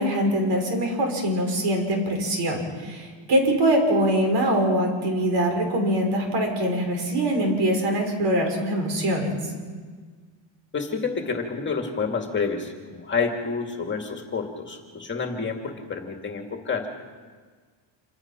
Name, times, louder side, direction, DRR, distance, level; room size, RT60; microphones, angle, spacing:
voice 1, 0.0-9.4, right 1 dB, 65° right, 3 dB, 5.8 m, -23 dB
voice 2, 10.7-16.9, left 5 dB, 25° left, 3 dB, 2.1 m, -29 dB
27.5 x 23.5 x 5.9 m, 1.5 s
cardioid pair, 170°, 45 cm